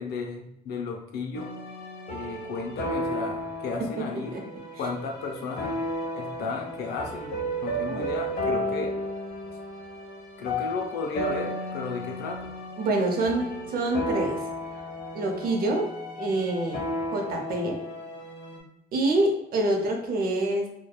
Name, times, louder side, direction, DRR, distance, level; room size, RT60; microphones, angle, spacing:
voice 1, 0.0-1.5 2.1-4.4 4.8-5.8 6.1-9.0 10.4-12.5, left 4 dB, 85° left, 3 dB, 0.5 m, -34 dB
sound 1, 1.3-18.6, equal, 65° left, 0.9 m, -33 dB
voice 2, 4.0-4.4 7.9-8.1 12.8-14.5 15.1-16.8 17.1-17.8 18.9-20.7, right 2 dB, 65° right, 2 dB, 0.6 m, -26 dB
2.8 x 2.2 x 2.2 m, 0.83 s
cardioid pair, 95°, 17 cm